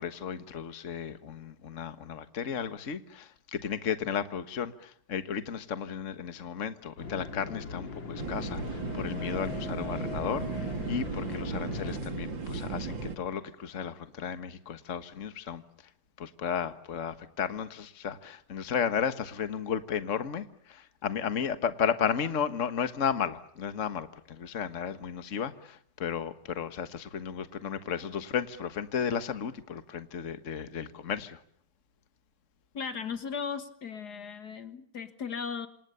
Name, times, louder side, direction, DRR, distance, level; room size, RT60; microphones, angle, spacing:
voice 1, 0.0-15.6 16.2-31.4, left 7 dB, 45° left, 11 dB, 1.7 m, -34 dB
sound 1, 7.0-12.0, left 4 dB, 80° left, 4.1 m, -40 dB
sound 2, 8.2-13.2, right 4 dB, 80° right, 3.5 m, -36 dB
voice 2, 32.7-35.7, left 6 dB, 60° left, 10 dB, 1.9 m, -36 dB
27.5 x 27.5 x 6.9 m, 0.63 s
omnidirectional pair, 2.0 m